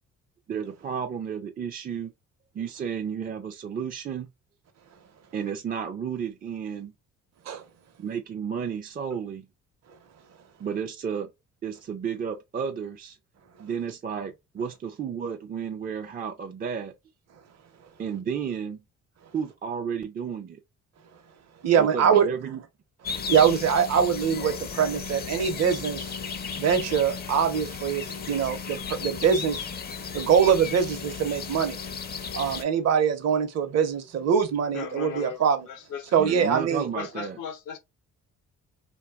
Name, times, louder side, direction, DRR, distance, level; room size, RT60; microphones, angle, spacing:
voice 1, 0.5-2.1 2.5-4.3 5.3-6.9 8.0-9.5 10.6-11.3 11.6-13.2 13.6-16.9 18.0-18.8 19.3-20.6 21.8-22.6 36.2-37.4, right 7 dB, 30° right, 0.4 m, -32 dB
voice 2, 21.6-22.3 23.3-26.0 26.6-29.6 30.1-31.8 32.3-35.7 36.1-36.9, right 7 dB, 60° right, 0.7 m, -23 dB
sound 1, 23.0-32.6, left 6 dB, 35° left, 0.4 m, -35 dB
voice 3, 34.7-36.1 36.7-37.8, left 7 dB, 90° left, 0.7 m, -37 dB
2.7 x 2.2 x 2.3 m
cardioid pair, 90°, 30 cm